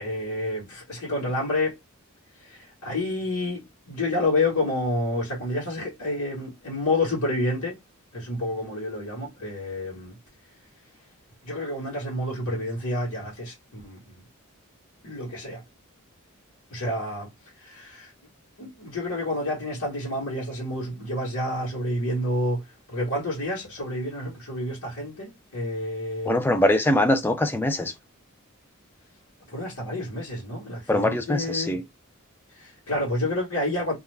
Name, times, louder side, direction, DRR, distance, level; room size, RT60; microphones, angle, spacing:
voice 1, 0.0-1.8 2.4-7.8 8.1-10.2 11.4-14.2 15.0-15.6 16.7-18.1 18.6-26.4 29.5-31.8 32.5-33.9, left 1 dB, 90° left, 1.1 m, -29 dB
voice 2, 26.3-27.9 30.9-31.8, left 1 dB, 10° left, 0.3 m, -22 dB
2.4 x 2.2 x 3.1 m
head